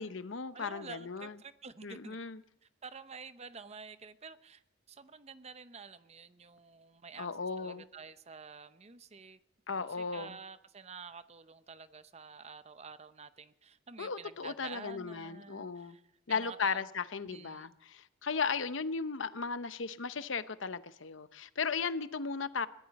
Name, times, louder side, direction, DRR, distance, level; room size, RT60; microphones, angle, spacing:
voice 1, 0.0-1.4 1.8-2.4 7.2-7.8 9.7-10.4 14.0-16.0 16.3-22.7, left 5 dB, 75° left, 13 dB, 0.8 m, -36 dB
voice 2, 0.5-2.2 2.8-4.6 4.9-7.3 7.6-9.4 9.7-16.0 16.3-16.8 17.3-17.8, right 5 dB, 35° right, 13 dB, 0.7 m, -49 dB
22.0 x 15.5 x 4.2 m, 0.80 s
head